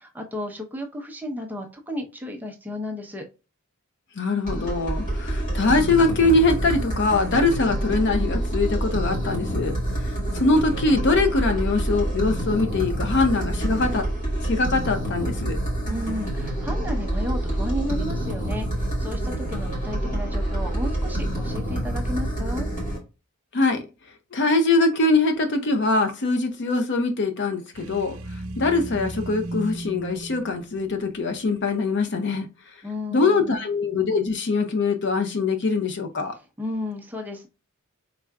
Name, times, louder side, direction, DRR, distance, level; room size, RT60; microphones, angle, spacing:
voice 1, 0.0-3.3 15.9-22.7 32.8-33.7 36.6-37.5, left 1 dB, 10° right, 0.6 m, -33 dB
voice 2, 4.2-9.8 10.3-14.0 14.4-15.6 23.5-23.8 24.3-28.2 28.6-32.5 33.1-36.4, left 3 dB, 55° left, 0.6 m, -22 dB
sound 1, 4.5-23.0, right 1 dB, 35° left, 1.8 m, -27 dB
sound 2, 27.7-31.7, right 1 dB, 65° right, 0.8 m, -35 dB
4.7 x 3.6 x 2.2 m
head